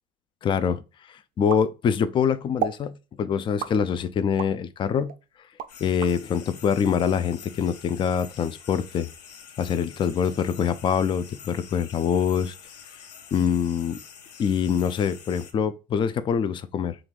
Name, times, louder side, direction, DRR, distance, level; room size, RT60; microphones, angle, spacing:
voice 1, 0.4-0.8 1.4-5.1 5.8-9.1 9.6-12.5 13.3-14.0 14.4-17.0, left 7 dB, 25° left, 0.3 m, -24 dB
sound 1, 1.5-2.2 2.6-2.9 3.6-4.6 5.1-6.2, right 9 dB, 45° right, 0.4 m, -32 dB
sound 2, 5.7-15.5, left 7 dB, 90° left, 0.6 m, -46 dB
3.1 x 2.4 x 2.3 m
hypercardioid pair, 85°, 20 cm